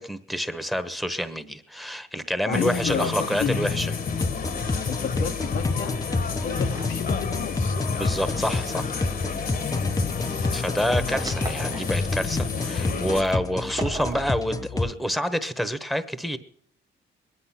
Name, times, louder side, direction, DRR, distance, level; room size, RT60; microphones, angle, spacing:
voice 1, 0.0-3.9 7.9-8.9 10.5-16.4, equal, ahead, 12 dB, 1.1 m, -28 dB
voice 2, 2.5-3.6 4.2-4.4 4.9-6.0 6.4-7.9, left 7 dB, 80° left, 4 dB, 1.5 m, -32 dB
sound 1, 2.5-13.2, left 5 dB, 50° left, 1.3 m, -29 dB
sound 2, 4.1-14.9, left 3 dB, 20° left, 0.7 m, -30 dB
sound 3, 6.6-7.0 7.7-9.6 11.1-12.3 12.8-12.9 13.2-13.4 13.8-14.4, right 4 dB, 20° right, 0.7 m, -39 dB
21.0 x 10.0 x 5.9 m, 0.66 s
cardioid pair, 90°, 20 cm